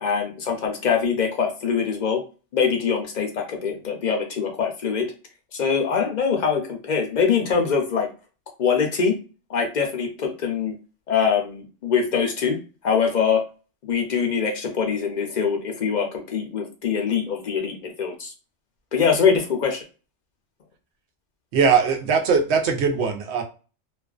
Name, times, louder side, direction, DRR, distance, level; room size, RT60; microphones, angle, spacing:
voice 1, 0.0-2.2 2.5-5.1 5.5-8.1 8.6-9.2 9.5-10.7 11.1-12.6 12.8-13.4 13.8-18.3 18.9-19.8, left 6 dB, 55° left, 2 dB, 0.5 m, -23 dB
voice 2, 21.5-23.4, right 5 dB, 70° right, 4 dB, 0.8 m, -20 dB
2.4 x 2.2 x 2.3 m, 0.34 s
omnidirectional pair, 1.2 m